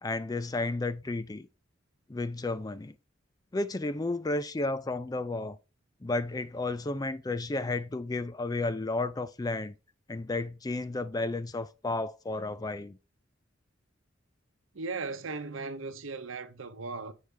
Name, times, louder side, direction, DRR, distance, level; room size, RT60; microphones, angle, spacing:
voice 1, 0.0-1.5 2.1-2.9 3.5-5.6 6.0-9.8 10.1-13.0, left 2 dB, 20° left, 0.4 m, -32 dB
voice 2, 14.7-17.1, right 3 dB, 85° right, 0.8 m, -37 dB
8.4 x 4.7 x 3.4 m
head